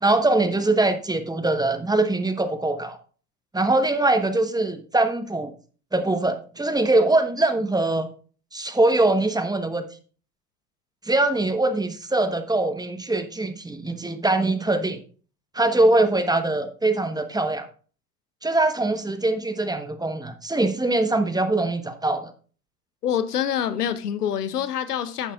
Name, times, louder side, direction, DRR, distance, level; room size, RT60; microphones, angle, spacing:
voice 1, 0.0-3.0 3.5-5.5 5.9-8.1 8.5-9.9 11.0-15.0 15.5-17.7 18.4-22.3, right 2 dB, 10° right, 1.1 m, -22 dB
voice 2, 23.0-25.3, left 9 dB, 85° left, 0.8 m, -26 dB
11.5 x 8.8 x 2.4 m
figure-of-eight pair, 70°, 45 cm